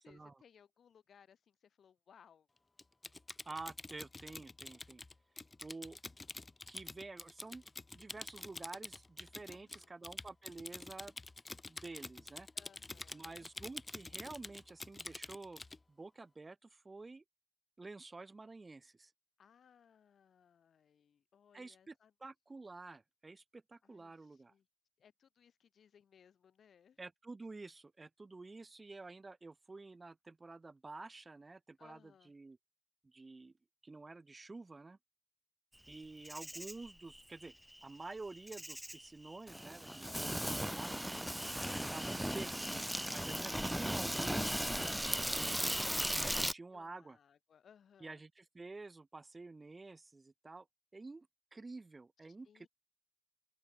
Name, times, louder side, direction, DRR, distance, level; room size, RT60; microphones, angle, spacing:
voice 1, 0.0-2.5 9.5-9.9 12.5-13.5 19.4-22.1 23.8-24.7 25.0-27.0 31.8-32.3 40.0-40.8 46.7-48.2 52.4-52.7, left 7 dB, 85° left, 7.2 m, -65 dB
Typing, 2.8-15.8, left 2 dB, 35° left, 0.8 m, -48 dB
voice 2, 3.4-5.0 5.6-6.0 6.7-7.6 7.9-11.2 11.7-12.5 13.1-15.6 15.9-17.2 17.8-19.1 21.5-21.9 22.2-24.5 27.0-32.6 33.0-33.5 33.8-35.0 35.9-37.5 37.8-41.0 41.9-42.8 43.1-44.6 45.3-45.7 46.2-47.2 48.0-50.7 50.9-52.7, right 3 dB, 40° right, 1.3 m, -50 dB
Insect, 35.9-46.5, equal, 5° right, 1.3 m, -37 dB
open air
cardioid pair, 45°, 0 cm